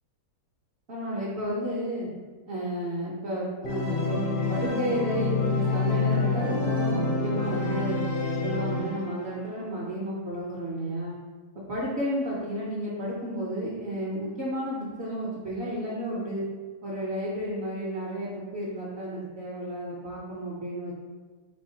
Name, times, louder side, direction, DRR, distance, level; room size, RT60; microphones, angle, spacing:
voice 1, 0.9-2.1 2.5-4.2 4.5-8.0 8.4-11.2 11.5-16.5 16.8-20.9, equal, 60° right, -6 dB, 0.7 m, -32 dB
Organ, 3.6-9.4, left 3 dB, 85° left, 1.3 m, -27 dB
3.8 x 3.5 x 2.7 m, 1.4 s
omnidirectional pair, 1.7 m